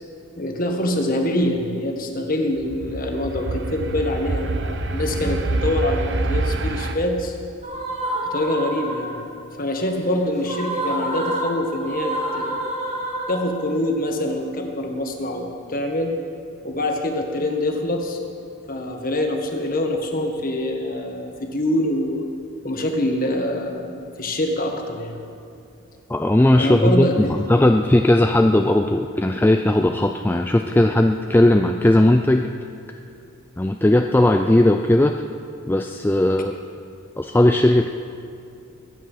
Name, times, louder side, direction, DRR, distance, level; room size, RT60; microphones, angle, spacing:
voice 1, 0.3-7.4 8.2-9.2 9.6-12.6 13.3-16.1 16.6-18.2 18.7-22.2 22.6-25.2 26.5-27.3, left 1 dB, 40° left, 3 dB, 1.6 m, -25 dB
sound 1, 2.6-6.9, right 2 dB, 55° right, 0.8 m, -26 dB
sound 2, 7.6-9.3 10.4-13.8, right 1 dB, 35° right, 4.8 m, -28 dB
voice 2, 26.1-32.5 33.6-35.1 35.6-36.5 37.2-37.9, left 1 dB, 10° left, 5 dB, 0.3 m, -17 dB
22.5 x 9.3 x 5.7 m, 2.5 s
head